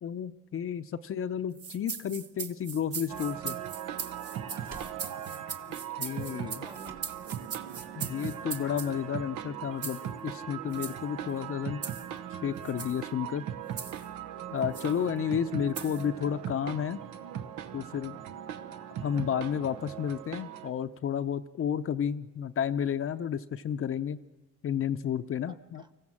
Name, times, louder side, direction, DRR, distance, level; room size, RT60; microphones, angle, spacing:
voice 1, 0.0-3.6 5.7-6.6 8.0-11.8 12.4-13.4 14.5-17.0 17.7-18.2 19.0-24.2 24.6-25.8, left 8 dB, 45° left, 8 dB, 0.6 m, -32 dB
sound 1, 1.5-8.9 9.8-10.1 10.7-11.0 11.8-12.1 12.6-13.0 13.8-14.1 14.7-14.9 15.7-16.0, right 6 dB, 50° right, 1.1 m, -40 dB
sound 2, 3.1-20.7, right 9 dB, 85° right, 0.9 m, -39 dB
sound 3, 3.5-3.7 4.1-5.1 6.4-7.5 7.8-7.9, right 5 dB, 65° right, 2.3 m, -51 dB
voice 2, 4.6-5.2 6.1-7.1 25.5-25.9, right 1 dB, 15° right, 11 dB, 1.0 m, -52 dB
25.0 x 15.0 x 7.4 m, 1.2 s
cardioid pair, 90°, 30 cm